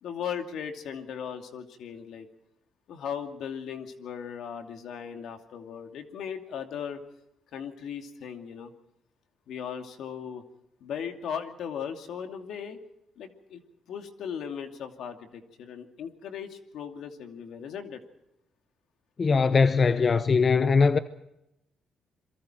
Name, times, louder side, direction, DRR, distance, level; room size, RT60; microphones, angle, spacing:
voice 1, 0.0-2.3 2.9-7.0 7.5-8.7 9.5-10.4 10.8-12.8 13.2-13.6 13.9-18.0, left 7 dB, 75° left, 2.6 m, -37 dB
voice 2, 19.2-21.0, left 4 dB, 40° left, 0.9 m, -21 dB
27.5 x 23.0 x 4.5 m
cardioid pair, 90°, 0 cm